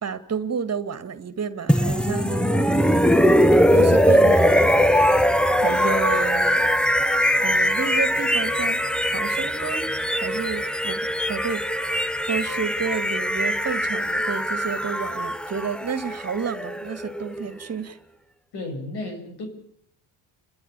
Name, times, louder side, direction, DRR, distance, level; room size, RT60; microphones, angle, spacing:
voice 1, 0.0-2.8 3.7-4.7 5.6-6.6 7.4-8.8 9.1-9.9 10.2-18.0, right 6 dB, 40° right, 13 dB, 1.9 m, -30 dB
sound 1, 1.7-17.6, equal, ahead, 0.9 m, -21 dB
voice 2, 18.5-19.5, left 2 dB, 75° left, 5 dB, 8.0 m, -33 dB
30.0 x 13.0 x 8.9 m, 0.69 s
cardioid pair, 90°, 40 cm